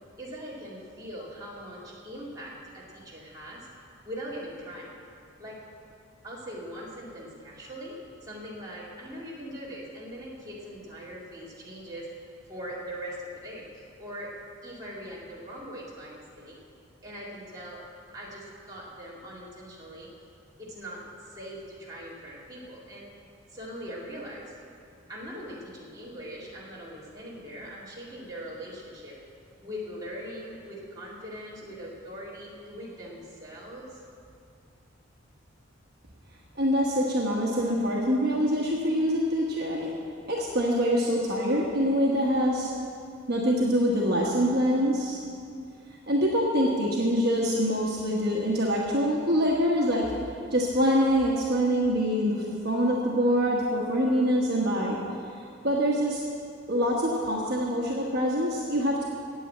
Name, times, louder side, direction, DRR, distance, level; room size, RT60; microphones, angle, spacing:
voice 1, 0.2-3.7 4.0-5.0 5.4-5.6 6.2-12.1 12.5-14.3 14.6-16.6 17.0-17.8 18.1-20.1 20.6-23.1 23.5-24.5 25.1-29.2 29.6-34.0, equal, 20° right, -6 dB, 2.3 m, -41 dB
voice 2, 36.5-39.9 40.3-42.7 43.3-45.2 46.1-50.1 50.5-55.0 55.6-56.2 56.7-59.1, equal, 50° right, -3 dB, 1.2 m, -25 dB
9.2 x 8.3 x 8.5 m, 2.4 s
head